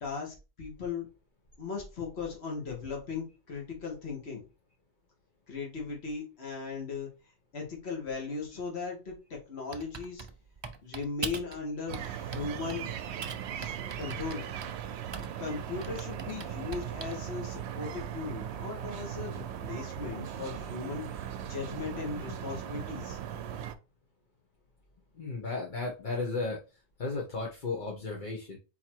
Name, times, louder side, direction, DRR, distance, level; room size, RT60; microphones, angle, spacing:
voice 1, 0.0-1.1 1.6-4.4 5.5-7.1 7.5-10.2 10.8-12.9 13.5-14.5 15.4-23.2, left 4 dB, 70° left, -1 dB, 1.7 m, -38 dB
Typing, 9.7-11.6 11.9-12.9 13.2-15.5 15.8-17.2, right 5 dB, 45° right, 0.3 m, -41 dB
sound 1, 11.9-23.7, right 9 dB, 75° right, 0.8 m, -38 dB
voice 2, 25.1-28.6, left 3 dB, 50° left, -1 dB, 1.0 m, -35 dB
4.1 x 2.8 x 4.4 m, 0.30 s
omnidirectional pair, 1.1 m